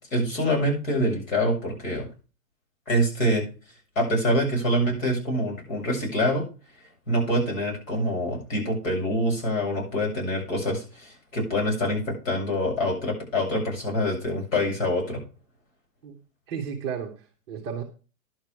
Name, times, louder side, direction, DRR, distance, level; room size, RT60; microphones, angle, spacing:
voice 1, 0.1-2.1 2.9-3.4 4.0-6.4 7.1-15.2, equal, 60° left, -1 dB, 7.3 m, -25 dB
voice 2, 16.5-17.8, right 7 dB, 15° right, -1 dB, 1.0 m, -33 dB
11.0 x 7.1 x 4.7 m, 0.34 s
hypercardioid pair, 175°, 45 cm